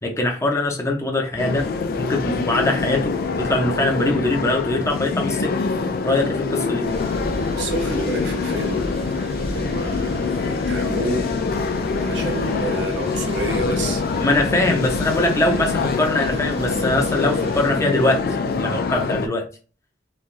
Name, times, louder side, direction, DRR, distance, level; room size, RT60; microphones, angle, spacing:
voice 1, 0.0-1.7 2.0-5.5 6.0-6.9 14.2-18.2 18.5-19.5, left 2 dB, 15° left, 1 dB, 0.7 m, -22 dB
sound 1, 1.4-19.3, left 4 dB, 55° left, 0.4 m, -25 dB
Thunder / Rain, 6.8-17.7, equal, 35° right, 0.8 m, -34 dB
voice 2, 7.5-8.8 9.5-11.2 12.0-14.0, right 2 dB, 70° right, 2 dB, 0.8 m, -29 dB
3.2 x 2.3 x 2.5 m, 0.36 s
head